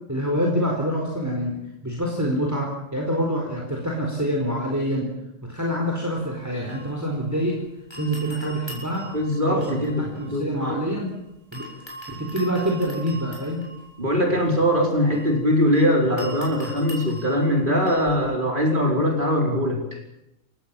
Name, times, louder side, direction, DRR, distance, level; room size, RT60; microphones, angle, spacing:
voice 1, 0.1-5.1 5.4-7.5 8.0-9.1 9.5-11.1 11.5-11.7 12.1-13.6, equal, 10° right, -1 dB, 4.4 m, -26 dB
sound 1, 6.1-7.6 7.9-11.1 11.5-18.3, right 1 dB, 15° left, 7.5 m, -43 dB
voice 2, 9.1-10.8 14.0-19.8, equal, 35° right, 2 dB, 5.1 m, -22 dB
29.0 x 16.0 x 9.0 m, 0.85 s
omnidirectional pair, 1.5 m